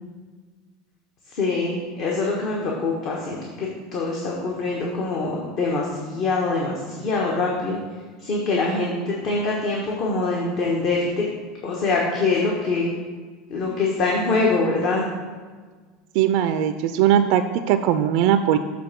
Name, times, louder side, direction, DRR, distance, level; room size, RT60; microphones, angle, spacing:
voice 1, 1.3-7.8 8.2-11.2 11.6-12.9 13.5-15.0, left 3 dB, 55° left, -2 dB, 1.2 m, -24 dB
voice 2, 16.2-18.6, right 10 dB, 60° right, 10 dB, 0.3 m, -19 dB
7.6 x 3.6 x 5.9 m, 1.5 s
hypercardioid pair, 80°, 0 cm